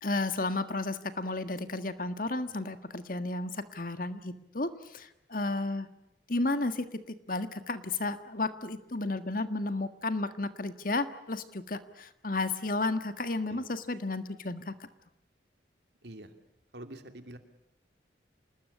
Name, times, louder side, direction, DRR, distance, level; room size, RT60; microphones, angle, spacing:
voice 1, 0.0-5.9 6.3-14.8, left 2 dB, 50° left, 10 dB, 1.7 m, -33 dB
voice 2, 16.0-16.3 16.7-17.4, right 1 dB, 65° right, 7 dB, 2.8 m, -46 dB
28.0 x 20.0 x 8.4 m, 0.86 s
head